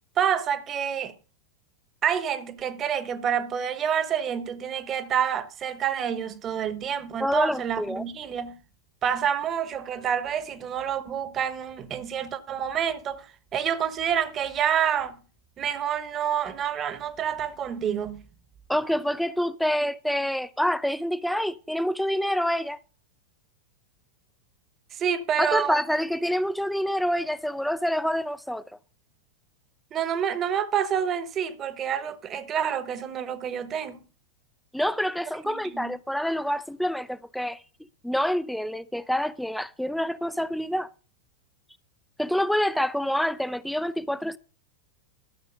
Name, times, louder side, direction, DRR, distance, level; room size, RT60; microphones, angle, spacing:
voice 1, 0.2-1.1 2.0-8.6 9.0-15.2 15.6-18.2 24.9-25.8 29.9-34.0 35.4-35.9, right 8 dB, 30° right, 1.1 m, -28 dB
voice 2, 7.2-8.0 18.7-22.8 25.4-28.6 34.7-37.6 38.0-40.9 42.2-44.4, equal, ahead, 0.4 m, -27 dB
13.0 x 7.3 x 5.1 m
figure-of-eight pair, 90°, 0 cm